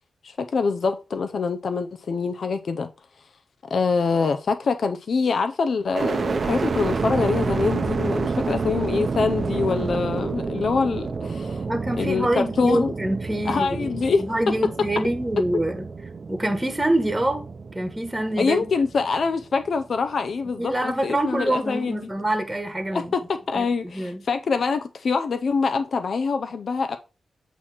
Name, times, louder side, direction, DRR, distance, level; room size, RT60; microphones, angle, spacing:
voice 1, 0.2-2.9 3.7-11.7 12.0-12.9 13.5-14.5 18.4-22.0 22.9-27.0, left 4 dB, 60° left, 0.5 m, -25 dB
sound 1, 5.9-19.9 20.5-21.2, right 4 dB, 50° right, 0.6 m, -29 dB
voice 2, 11.7-15.9 16.3-17.5 17.7-18.6 20.6-23.1 23.5-24.2, right 1 dB, 10° right, 1.3 m, -25 dB
8.2 x 3.0 x 5.7 m
wide cardioid pair, 110°, 0 cm